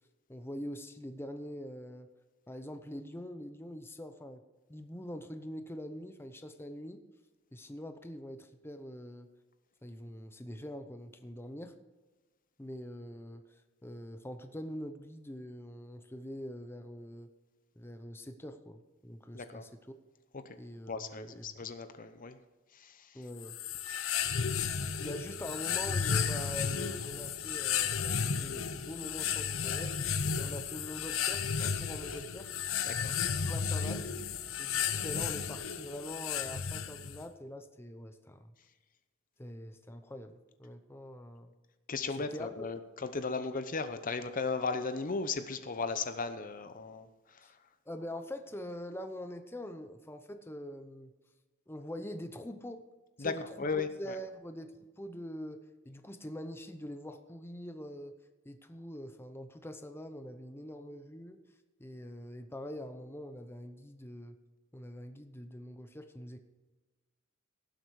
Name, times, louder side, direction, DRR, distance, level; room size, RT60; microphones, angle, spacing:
voice 1, 0.3-2.1 2.5-4.4 4.7-7.0 7.5-9.3 9.8-11.7 12.6-17.3 17.8-20.0 20.6-21.4 23.1-23.6 25.0-30.0 30.4-32.5 33.4-34.1 34.6-38.5 39.4-41.5 42.2-42.5 47.4-47.5 47.9-51.1 51.7-52.8 53.2-54.7 55.0-58.1 58.4-61.4 61.8-64.4 64.7-66.4, equal, 10° left, 7 dB, 0.8 m, -44 dB
voice 2, 20.9-22.4 22.7-23.2 23.9-24.3 32.9-33.2 41.9-47.4 53.2-54.2, left 4 dB, 40° left, 10 dB, 0.8 m, -36 dB
sound 1, 23.4-37.2, left 7 dB, 90° left, 0.9 m, -33 dB
17.5 x 7.7 x 4.8 m, 1.2 s
head